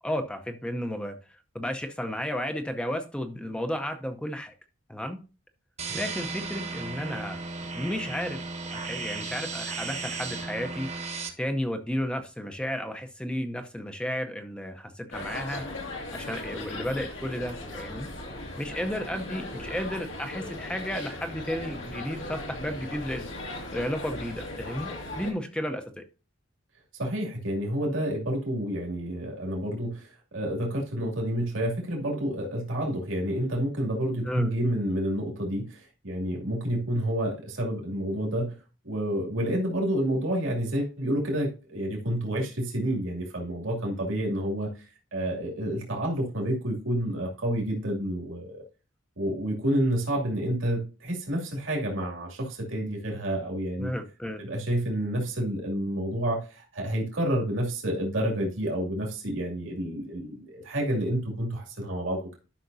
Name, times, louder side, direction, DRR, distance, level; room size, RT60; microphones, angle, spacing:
voice 1, 0.0-1.2 1.5-4.5 4.9-5.2 5.9-7.4 7.7-8.4 8.7-10.9 11.4-15.7 16.1-18.1 18.6-23.3 23.7-24.9 25.1-26.0 34.2-34.5 53.8-54.4, equal, 5° left, 6 dB, 0.6 m, -33 dB
sound 1, 5.8-11.3, right 4 dB, 35° right, 1.0 m, -35 dB
sound 2, 15.1-25.3, left 2 dB, 75° left, 2.2 m, -38 dB
voice 2, 27.0-38.6 38.8-44.7 45.1-48.6 49.2-53.9 54.4-62.4, right 1 dB, 85° right, -1 dB, 2.5 m, -29 dB
11.5 x 5.8 x 2.7 m, 0.33 s
head